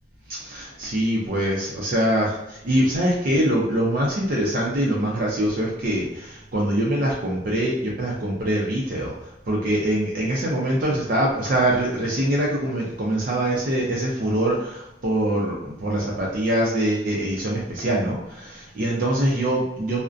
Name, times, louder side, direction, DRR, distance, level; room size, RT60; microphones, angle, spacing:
voice 1, 0.4-9.1 9.5-20.0, right 1 dB, 55° right, -4 dB, 0.5 m, -23 dB
2.4 x 2.1 x 2.4 m, 0.87 s
head